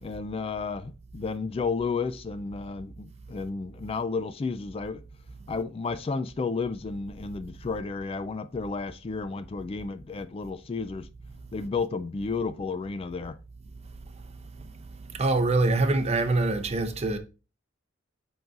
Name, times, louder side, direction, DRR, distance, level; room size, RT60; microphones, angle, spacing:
voice 1, 0.0-5.0 5.5-11.1 11.5-13.4, left 4 dB, 30° left, 0.3 m, -32 dB
voice 2, 14.6-17.2, right 2 dB, 35° right, 0.7 m, -25 dB
10.5 x 3.9 x 2.5 m
head